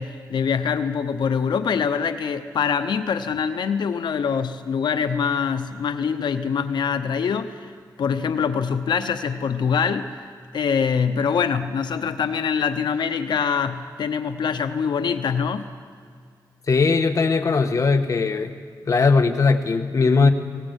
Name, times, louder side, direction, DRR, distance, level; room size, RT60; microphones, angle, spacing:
voice 1, 0.0-7.7 8.0-10.2 10.5-15.7, left 6 dB, 85° left, 9 dB, 0.9 m, -24 dB
voice 2, 16.7-18.5 18.9-20.3, left 4 dB, 45° left, 6 dB, 1.4 m, -19 dB
21.0 x 18.5 x 8.2 m, 2.1 s
wide cardioid pair, 110°, 8 cm